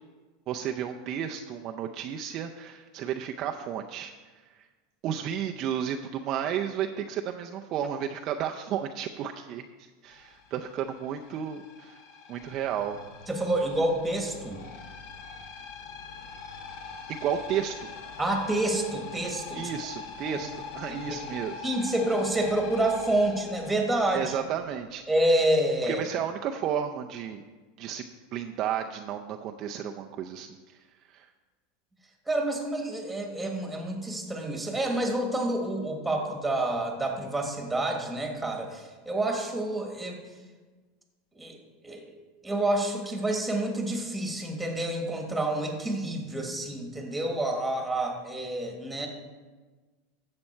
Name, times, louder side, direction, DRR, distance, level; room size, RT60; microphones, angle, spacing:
voice 1, 0.5-4.1 4.5-4.6 5.0-12.0 12.3-13.0 17.1-17.9 19.5-21.7 24.1-25.0 25.9-27.4 27.8-28.0 28.3-30.8 31.1-31.3, right 9 dB, 40° right, 3 dB, 0.5 m, -32 dB
sound 1, 10.1-24.6, left 5 dB, 60° left, 1.4 m, -43 dB
voice 2, 13.3-14.6 18.2-19.7 20.3-20.4 21.1-21.2 21.6-24.3 25.1-26.0 32.3-40.2 41.4-41.6 41.8-42.1 42.4-49.1, right 1 dB, 5° right, 2 dB, 1.6 m, -28 dB
11.5 x 7.6 x 4.4 m, 1.3 s
supercardioid pair, 145°, 0 cm